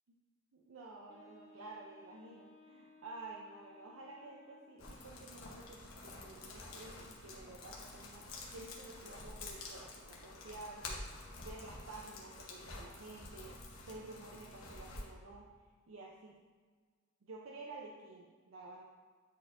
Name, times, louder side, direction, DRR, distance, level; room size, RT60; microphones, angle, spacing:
voice 1, 0.5-13.6 13.8-15.5 15.9-16.4 17.2-18.8, right 3 dB, 90° right, -2 dB, 0.6 m, -51 dB
Wind instrument woodwind instrument, 1.1-5.2, left 2 dB, 35° left, 0.7 m, -61 dB
sound 1, 4.8-15.0, left 2 dB, 90° left, 1.1 m, -49 dB
9.3 x 4.2 x 2.6 m, 1.5 s
head